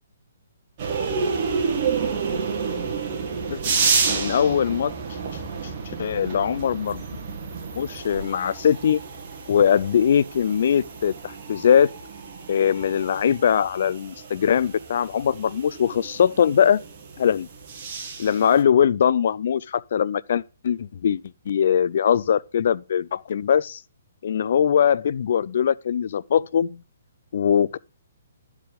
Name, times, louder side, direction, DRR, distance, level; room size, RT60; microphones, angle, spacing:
metro entering the station, 0.8-18.6, right 5 dB, 40° right, 2.3 m, -30 dB
voice 1, 4.1-4.9 6.0-7.0 7.8-9.0 9.5-11.9 12.5-16.8 17.2-17.5 18.2-23.8 24.2-26.8 27.3-27.8, left 8 dB, 60° left, 0.4 m, -21 dB
11.5 x 4.8 x 5.2 m
hypercardioid pair, 145°, 0 cm